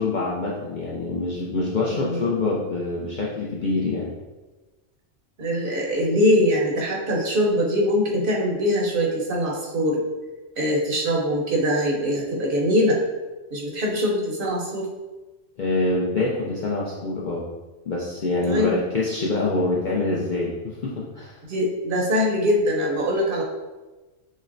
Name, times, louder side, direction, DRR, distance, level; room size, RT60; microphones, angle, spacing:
voice 1, 0.0-4.1 15.6-17.4 17.9-21.4, left 2 dB, 60° left, -5 dB, 0.5 m, -25 dB
voice 2, 1.9-2.3 5.4-10.0 10.6-13.0 13.5-14.9 18.5-18.7 21.5-23.4, equal, 55° right, -1 dB, 0.7 m, -22 dB
6.2 x 2.1 x 2.5 m, 1.2 s
omnidirectional pair, 1.3 m